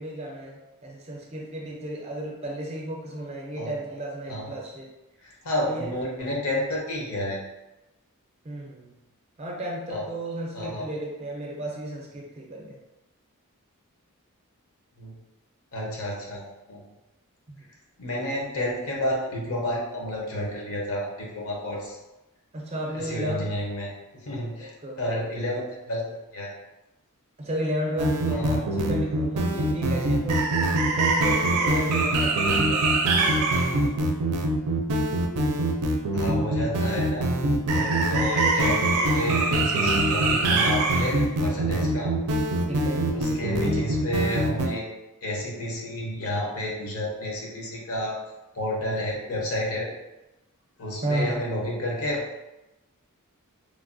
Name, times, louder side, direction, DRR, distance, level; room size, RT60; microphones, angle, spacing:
voice 1, 0.0-4.9 5.6-5.9 8.4-8.9 9.4-12.8 17.5-17.6 22.5-23.6 24.6-25.3 27.4-33.2 42.7-43.1 51.0-51.4, right 1 dB, 30° right, -2 dB, 0.5 m, -33 dB
voice 2, 5.2-7.4 9.9-10.0 10.5-10.8 15.0-15.1 15.7-16.8 18.0-22.0 22.9-23.9 24.2-24.7 25.0-26.5 28.3-28.7 36.1-37.3 37.7-42.1 43.1-44.8 45.2-48.2 48.5-49.9 50.8-52.2, left 1 dB, 70° left, -3 dB, 0.7 m, -30 dB
sound 1, 28.0-44.7, right 2 dB, 85° right, 0.4 m, -23 dB
3.1 x 2.2 x 2.5 m, 0.99 s
head